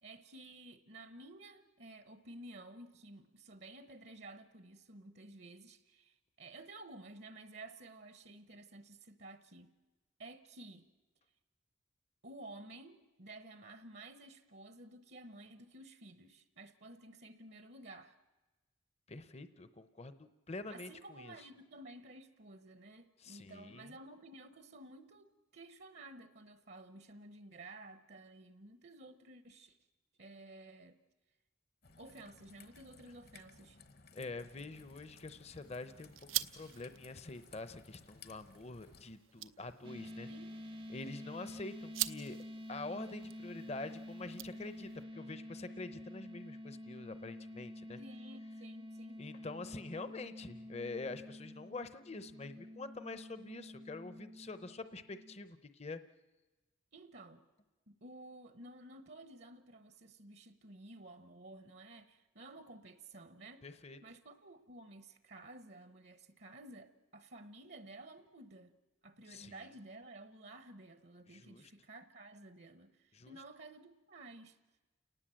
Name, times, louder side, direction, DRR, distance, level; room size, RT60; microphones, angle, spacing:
voice 1, 0.0-9.7 10.2-10.9 12.2-18.2 20.7-29.8 30.2-31.0 32.0-33.8 40.3-40.6 48.0-49.2 56.9-57.4 57.9-63.7 64.0-68.7 69.0-74.6, right 2 dB, 55° right, 1.0 m, -53 dB
voice 2, 19.1-21.4 23.2-23.9 34.1-40.3 40.9-42.4 42.7-48.0 49.2-56.0 63.6-64.0 69.3-69.6 71.3-71.7 73.1-73.4, left 3 dB, 30° left, 0.8 m, -46 dB
Raindrop / Trickle dribble, 31.8-39.0, left 4 dB, 50° left, 1.1 m, -60 dB
sound 1, 34.7-45.0, right 14 dB, 90° right, 0.8 m, -46 dB
sound 2, 39.8-55.4, left 1 dB, 25° right, 0.7 m, -49 dB
29.5 x 19.0 x 7.7 m
head